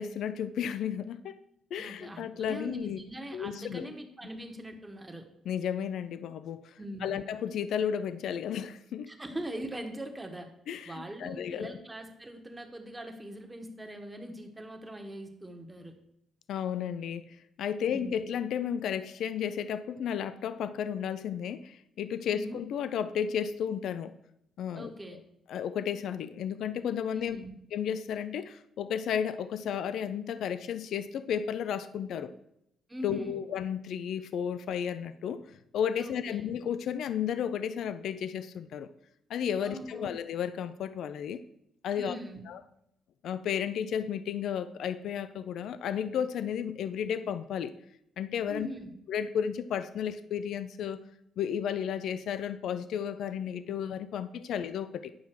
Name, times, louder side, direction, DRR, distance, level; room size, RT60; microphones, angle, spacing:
voice 1, 0.0-1.4 1.7-3.0 3.3-3.9 5.5-6.7 7.0-9.1 10.7-11.8 16.5-24.1 24.6-25.2 25.5-27.4 27.7-32.3 33.0-35.4 35.7-38.9 39.3-41.4 41.8-42.2 42.5-42.6 43.2-47.7 48.2-48.7 49.1-51.0 51.4-55.1, left 8 dB, 75° left, 13 dB, 0.4 m, -33 dB
voice 2, 1.7-5.3 6.8-7.2 9.1-10.5 10.8-15.9 17.8-18.2 22.3-22.6 24.7-25.2 27.1-27.5 32.9-33.4 36.0-36.5 39.6-40.2 41.9-42.4 48.5-48.9, right 1 dB, 15° right, 4 dB, 1.4 m, -42 dB
9.6 x 5.6 x 4.6 m, 0.79 s
cardioid pair, 90°, 0 cm